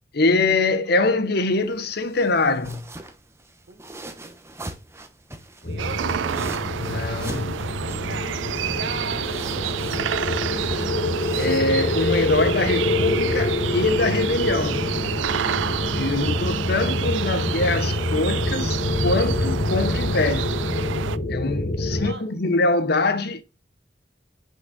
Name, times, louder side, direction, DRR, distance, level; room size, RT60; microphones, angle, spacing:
voice 1, 0.1-2.9 6.8-7.7 11.3-14.9 15.9-18.8 19.0-20.5 21.3-23.4, left 2 dB, 60° left, 0.9 m, -23 dB
sound 1, 1.5-14.1, right 2 dB, 15° right, 0.9 m, -42 dB
sound 2, 5.6-22.1, left 2 dB, 40° left, 0.9 m, -26 dB
voice 2, 5.6-6.2 8.1-10.1 21.8-22.3, right 4 dB, 65° right, 1.3 m, -39 dB
sound 3, 5.8-21.2, right 8 dB, 90° right, 0.4 m, -29 dB
6.0 x 5.4 x 4.1 m
head